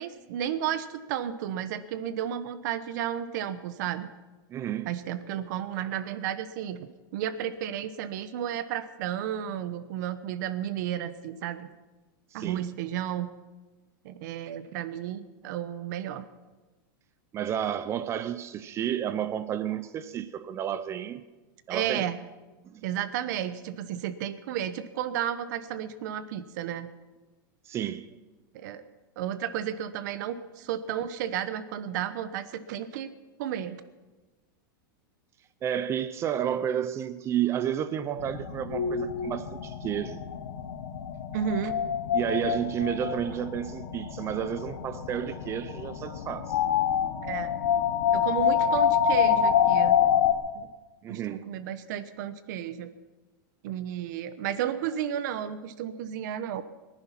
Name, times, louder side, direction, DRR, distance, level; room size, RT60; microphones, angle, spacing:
voice 1, 0.0-4.1 4.9-11.7 12.3-13.3 14.0-16.2 21.7-22.2 22.8-26.9 28.5-28.8 29.2-33.1 33.4-33.8 41.3-41.8 47.2-47.5 48.1-50.0 50.5-50.7 51.1-52.9 53.6-56.6, right 10 dB, 55° right, 1.1 m, -32 dB
voice 2, 4.5-4.9 12.3-12.7 17.3-21.2 21.7-22.1 22.6-22.8 27.7-28.1 35.6-40.2 42.1-46.6 51.0-51.5, right 10 dB, 25° right, 0.5 m, -31 dB
sound 1, 38.2-50.3, left 8 dB, 80° left, 1.7 m, -27 dB
23.0 x 10.5 x 5.8 m
supercardioid pair, 150°, 11 cm